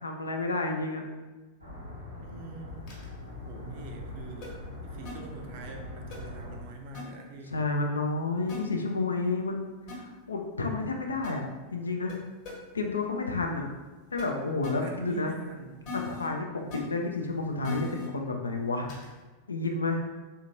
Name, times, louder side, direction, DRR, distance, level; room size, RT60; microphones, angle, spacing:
voice 1, 0.0-1.0 7.5-11.5 11.7-12.2 12.7-13.7 14.1-15.3 15.9-16.5 16.7-18.9 19.5-20.0, left 3 dB, 75° left, 3 dB, 0.4 m, -30 dB
sound 1, 1.6-6.6, left 1 dB, 85° right, 0.7 m, -42 dB
voice 2, 2.2-2.9 3.4-7.5 14.6-15.9, right 2 dB, 45° right, 3 dB, 0.5 m, -44 dB
sound 2, 2.9-3.1 4.4-4.5 5.0-5.1 6.1-6.2 6.9-7.0 8.5-8.6 9.9-10.0 11.2-11.3 12.1-12.2 12.4-12.5 14.2-14.3 14.6-14.7 15.8-16.3 16.7-16.8 17.6-18.1 18.9-19.1, left 6 dB, 40° left, 1.2 m, -38 dB
3.4 x 2.8 x 2.5 m, 1.2 s
figure-of-eight pair, 90°, 0 cm